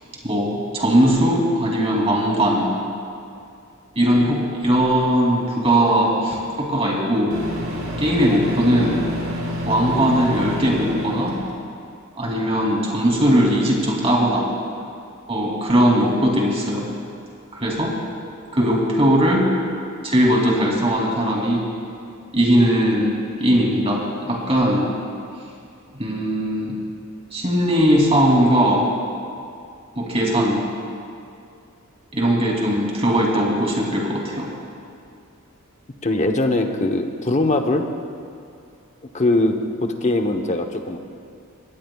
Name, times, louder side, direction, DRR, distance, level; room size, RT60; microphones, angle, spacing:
voice 1, 0.2-2.7 3.9-7.4 8.0-9.0 9.7-11.4 12.2-14.5 15.3-16.9 17.6-18.0 18.5-19.5 20.0-21.6 22.3-24.9 26.0-26.7 27.3-28.9 29.9-30.6 32.1-34.5, equal, 30° right, -2 dB, 2.8 m, -19 dB
Microwave oven, 6.3-6.4 7.3-11.6, equal, 70° right, 3.6 m, -29 dB
voice 2, 36.0-37.9 39.1-41.0, left 2 dB, 35° left, 5 dB, 0.9 m, -21 dB
21.0 x 17.5 x 2.4 m, 2.5 s
head